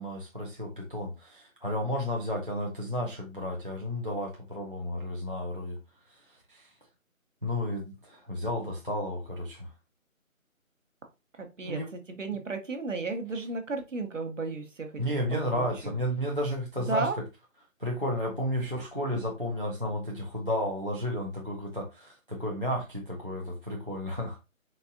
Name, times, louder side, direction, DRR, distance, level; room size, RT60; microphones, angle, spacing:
voice 1, 0.0-5.8 6.1-6.2 6.5-6.7 7.4-9.7 11.6-11.9 15.0-17.2 17.8-24.4, equal, 40° right, 0.4 m, -32 dB
voice 2, 11.4-15.0 15.3-15.9 16.8-17.2, right 3 dB, 60° right, 0.9 m, -34 dB
4.1 x 2.4 x 2.5 m
figure-of-eight pair, 175°, 42 cm